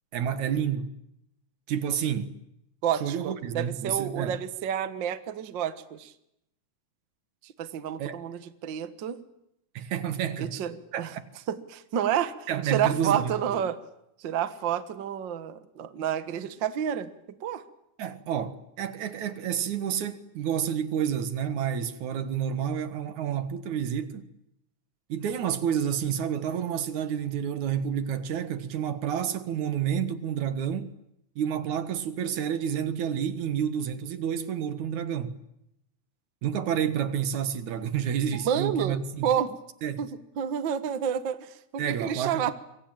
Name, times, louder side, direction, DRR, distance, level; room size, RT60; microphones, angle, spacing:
voice 1, 0.1-0.9 1.7-2.3 3.0-4.4 8.0-8.2 9.7-10.6 10.9-11.3 12.5-13.6 18.0-24.3 25.1-30.9 31.4-35.4 36.4-39.3 39.8-40.1 41.8-42.5, right 8 dB, 75° right, 2.9 m, -29 dB
voice 2, 2.8-6.1 7.4-9.2 10.4-11.1 11.5-12.3 12.6-13.8 14.2-17.1 17.4-17.6 38.3-39.5 40.0-40.1 40.4-42.5, right 9 dB, 50° right, 1.6 m, -29 dB
27.5 x 24.0 x 9.0 m
omnidirectional pair, 3.5 m